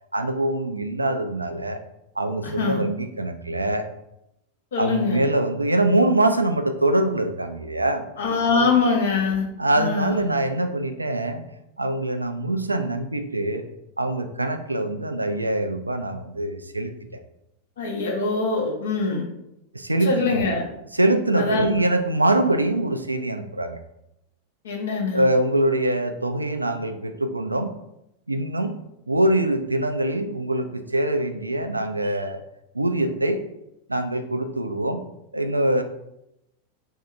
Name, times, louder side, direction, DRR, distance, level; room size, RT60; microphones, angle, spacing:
voice 1, 0.1-1.8 2.2-3.9 4.8-8.0 8.5-8.7 9.6-11.4 11.8-13.6 14.0-17.2 19.7-20.5 20.9-23.8 25.1-27.7 28.3-28.7 29.1-32.4 32.7-33.4 33.9-35.0 35.3-35.8, right 1 dB, 85° right, 8 dB, 0.3 m, -23 dB
voice 2, 2.4-2.8 4.7-5.2 8.2-9.5 9.8-10.3 17.8-19.3 20.0-20.6 21.3-21.7 24.6-25.2, left 4 dB, 60° left, -1 dB, 0.9 m, -23 dB
3.2 x 2.7 x 3.6 m, 0.85 s
figure-of-eight pair, 90°, 0 cm